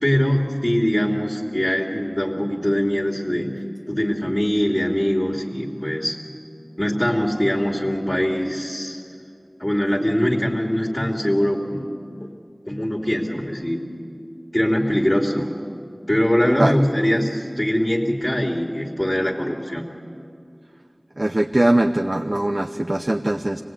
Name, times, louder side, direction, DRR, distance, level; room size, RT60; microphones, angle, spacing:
voice 1, 0.0-3.6 3.9-6.2 6.8-9.0 9.6-11.9 12.7-13.8 14.5-15.5 16.1-19.9, equal, 25° left, 0 dB, 2.9 m, -22 dB
voice 2, 21.2-23.6, right 1 dB, 45° right, 5 dB, 0.8 m, -21 dB
25.5 x 19.0 x 9.2 m, 2.4 s
wide cardioid pair, 40°, 0 cm